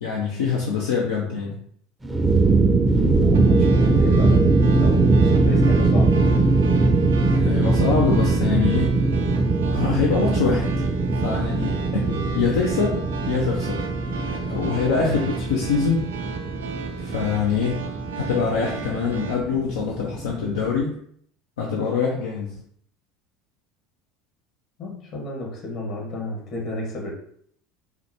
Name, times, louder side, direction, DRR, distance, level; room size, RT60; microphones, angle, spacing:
voice 1, 0.0-1.6 7.3-9.0 9.7-10.7 11.1-12.1 12.3-13.9 14.3-16.1 17.0-17.8 18.1-20.9 21.6-22.5, left 5 dB, 80° left, -2 dB, 0.5 m, -24 dB
sound 1, 2.0-20.8, right 3 dB, 15° right, 0.5 m, -21 dB
voice 2, 3.0-6.4 12.0-12.2 15.0-15.3 24.8-27.1, left 2 dB, 55° left, -1 dB, 1.3 m, -32 dB
sound 2, 3.3-19.3, right 6 dB, 85° right, 0.4 m, -36 dB
3.6 x 2.2 x 2.9 m, 0.64 s
hypercardioid pair, 80°, 0 cm